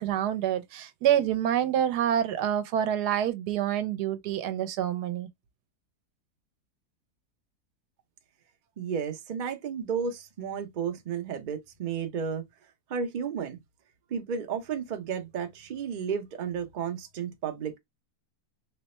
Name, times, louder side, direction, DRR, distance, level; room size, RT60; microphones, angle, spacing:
voice 1, 0.0-5.3, right 10 dB, 85° right, 1.2 m, -27 dB
voice 2, 8.8-12.4 12.9-13.6 14.1-17.8, right 7 dB, 60° right, 0.5 m, -32 dB
3.2 x 2.1 x 4.1 m
omnidirectional pair, 1.7 m